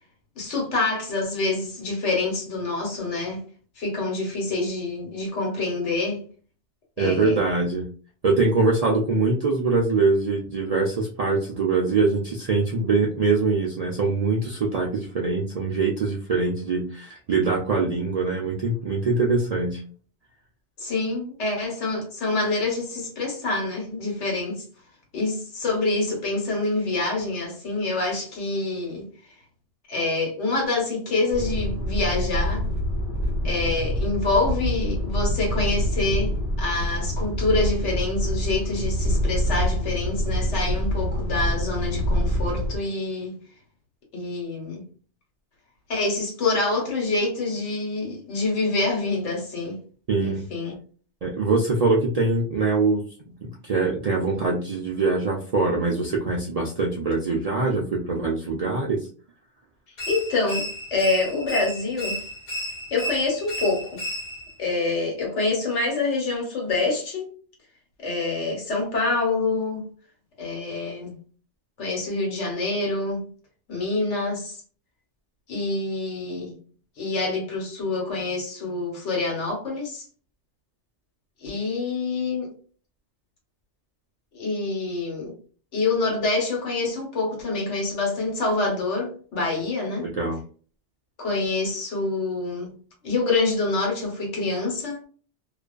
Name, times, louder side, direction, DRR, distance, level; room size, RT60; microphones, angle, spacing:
voice 1, 0.4-3.4 3.8-6.2 7.0-7.4 20.8-24.6 25.1-29.1 29.9-32.6 33.4-43.4 44.1-44.8 45.9-49.8 50.2-50.7 60.1-60.6 60.9-62.2 62.9-64.0 64.6-67.3 68.0-69.8 70.4-71.1 71.8-73.2 73.7-74.6 75.5-76.5 77.0-80.0 81.4-82.5 84.3-85.3 85.7-90.1 91.2-92.7 93.0-95.0, left 3 dB, 90° left, 1.3 m, -26 dB
voice 2, 7.0-7.9 8.2-19.8 50.1-50.4 51.2-53.0 53.4-59.0 90.0-90.4, right 3 dB, 65° right, 0.3 m, -23 dB
sound 1, 31.3-42.8, equal, 65° left, 1.1 m, -26 dB
Scary Violin Sounds, 60.0-64.6, equal, 45° left, 0.8 m, -33 dB
2.4 x 2.3 x 2.3 m
omnidirectional pair, 1.2 m